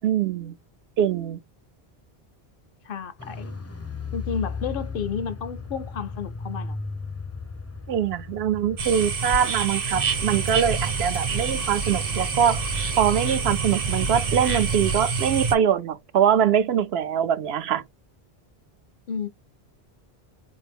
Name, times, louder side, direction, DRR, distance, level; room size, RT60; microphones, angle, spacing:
voice 1, 0.0-0.6 1.0-1.4 7.9-12.6 13.0-17.8, right 9 dB, 80° right, 0.8 m, -23 dB
voice 2, 2.8-3.6 4.1-6.8 19.1-19.3, left 6 dB, 65° left, 0.7 m, -31 dB
Car, 3.2-9.4 9.6-9.7, left 4 dB, 25° left, 0.4 m, -35 dB
sound 1, 8.8-15.6, right 5 dB, 60° right, 1.1 m, -27 dB
sound 2, 9.9-15.0, right 1 dB, 35° right, 0.5 m, -34 dB
4.4 x 2.6 x 3.4 m
omnidirectional pair, 1.1 m